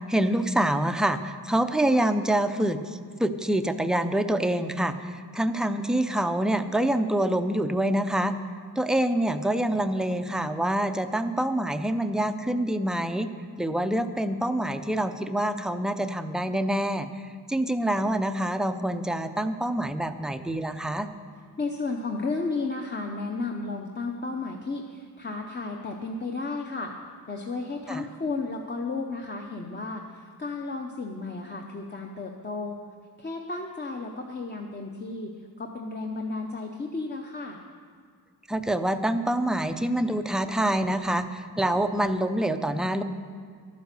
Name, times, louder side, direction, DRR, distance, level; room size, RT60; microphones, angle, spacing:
voice 1, 0.1-8.3 8.8-13.3 13.6-17.1 17.5-21.1 27.9-28.0 38.5-43.0, right 1 dB, ahead, 9 dB, 0.4 m, -26 dB
voice 2, 21.6-26.9 27.3-32.8 33.2-35.3 35.6-37.6, left 3 dB, 25° left, 1 dB, 0.7 m, -33 dB
12.0 x 9.4 x 6.6 m, 2.1 s
wide cardioid pair, 160°, 39 cm